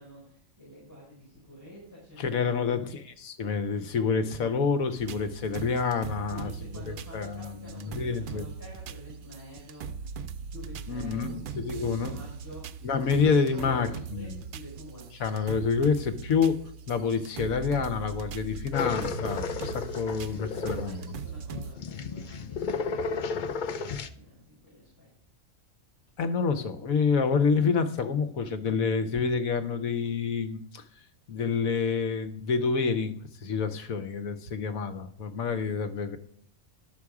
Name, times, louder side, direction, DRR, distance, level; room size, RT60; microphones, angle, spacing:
voice 1, 0.0-2.6 6.1-15.1 20.5-25.1, equal, 15° left, -5 dB, 4.7 m, -47 dB
voice 2, 2.2-6.8 7.1-8.4 10.9-12.2 12.8-14.4 15.2-16.6 16.9-21.1 26.2-30.8 31.3-33.1 33.4-36.2, left 5 dB, 75° left, 9 dB, 1.4 m, -28 dB
sound 1, 5.0-21.8, right 7 dB, 80° right, 0.4 m, -40 dB
sound 2, 18.7-24.1, left 5 dB, 55° left, 0.5 m, -33 dB
11.5 x 6.9 x 4.8 m, 0.64 s
omnidirectional pair, 1.5 m